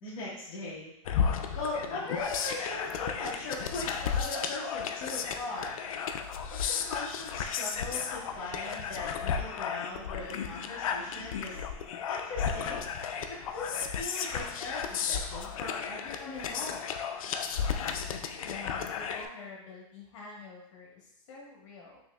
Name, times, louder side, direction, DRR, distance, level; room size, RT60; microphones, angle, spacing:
voice 1, 0.0-5.8 6.5-11.6 12.1-12.9 13.3-16.8, left 2 dB, 30° left, -8 dB, 1.1 m, -39 dB
sound 1, 1.1-19.3, left 7 dB, 80° left, 0.4 m, -34 dB
voice 2, 18.4-22.0, left 4 dB, 60° left, -3 dB, 1.3 m, -47 dB
6.0 x 2.9 x 2.3 m, 0.77 s
supercardioid pair, 165°, 18 cm